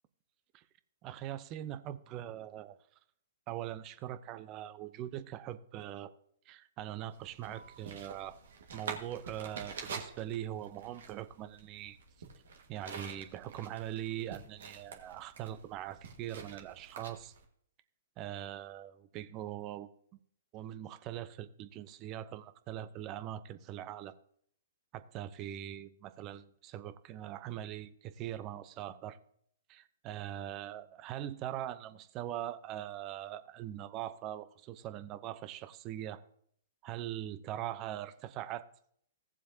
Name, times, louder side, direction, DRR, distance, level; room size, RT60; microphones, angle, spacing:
voice 1, 1.0-2.8 3.5-6.1 6.5-8.4 8.7-12.0 12.7-17.3 18.2-19.9 20.5-24.1 24.9-29.2 29.7-36.2 36.8-38.6, right 12 dB, 30° right, 0.7 m, -42 dB
sound 1, 7.1-17.4, right 5 dB, 65° right, 1.6 m, -47 dB
17.0 x 7.4 x 2.8 m
figure-of-eight pair, 120°, 0 cm